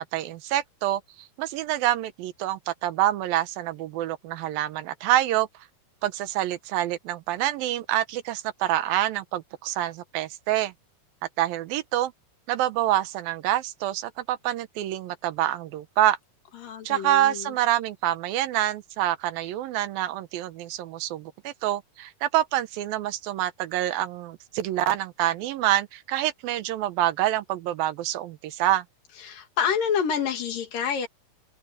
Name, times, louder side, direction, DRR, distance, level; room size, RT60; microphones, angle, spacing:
voice 1, 0.0-5.5 6.0-10.7 11.4-12.1 12.5-16.2 16.9-28.8, right 13 dB, 80° right, 2.8 m, -26 dB
voice 2, 16.6-17.5 29.2-31.1, left 7 dB, 70° left, 3.8 m, -28 dB
omnidirectional pair, 4.1 m